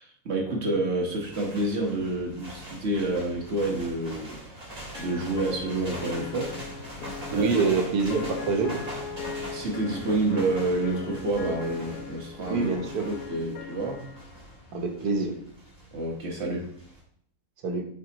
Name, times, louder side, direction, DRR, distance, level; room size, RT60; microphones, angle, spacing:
voice 1, 0.0-4.4 5.0-6.6 7.3-7.6 9.5-12.7 13.0-14.1 15.9-16.7, right 2 dB, 45° right, -1 dB, 1.4 m, -28 dB
sound 1, 1.1-17.0, equal, 25° right, 1.8 m, -42 dB
sound 2, 4.9-14.4, left 5 dB, 85° left, 1.2 m, -39 dB
voice 2, 7.3-8.8 12.5-13.1 14.7-15.3 17.6-17.9, right 4 dB, 75° right, 4 dB, 1.5 m, -25 dB
8.0 x 4.7 x 3.0 m, 0.65 s
omnidirectional pair, 1.6 m